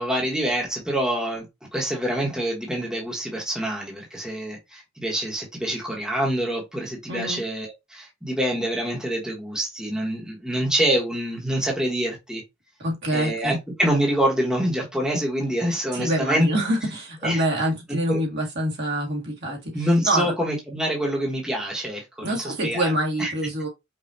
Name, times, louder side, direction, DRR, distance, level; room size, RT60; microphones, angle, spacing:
voice 1, 0.0-1.5 1.7-12.4 13.1-16.5 17.2-17.4 17.9-18.2 19.7-22.9 23.2-23.3, right 1 dB, 5° right, 1.3 m, -26 dB
voice 2, 7.1-7.4 12.8-13.6 15.9-20.3 22.2-23.7, right 1 dB, 60° right, 1.8 m, -26 dB
5.2 x 2.5 x 2.7 m
head